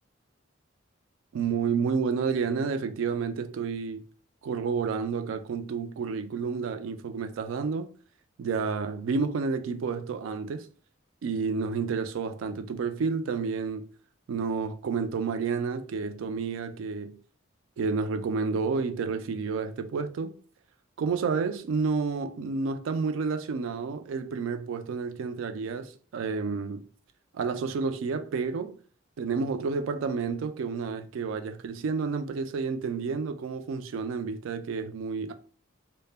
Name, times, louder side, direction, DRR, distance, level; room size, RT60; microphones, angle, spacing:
voice 1, 1.3-4.0 4.4-7.9 8.4-10.7 11.2-13.9 14.3-17.2 17.8-20.4 21.0-26.8 27.3-28.8 29.2-35.3, right 5 dB, 85° right, 0.3 m, -30 dB
2.1 x 2.1 x 3.2 m
head